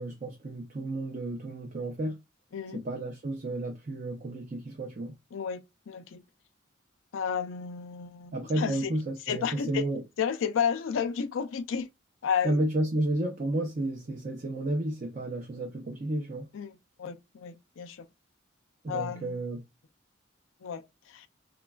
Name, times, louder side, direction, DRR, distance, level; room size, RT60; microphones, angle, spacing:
voice 1, 0.0-2.2 2.7-5.2 8.3-10.0 12.4-16.5 18.8-19.6, right 1 dB, 40° right, 0.5 m, -32 dB
voice 2, 2.5-2.8 5.3-6.2 7.1-8.9 9.3-9.8 10.2-11.9 12.2-12.6 16.5-18.1 18.9-19.4 20.6-21.3, left 7 dB, 75° left, 0.4 m, -32 dB
3.1 x 2.3 x 2.2 m
head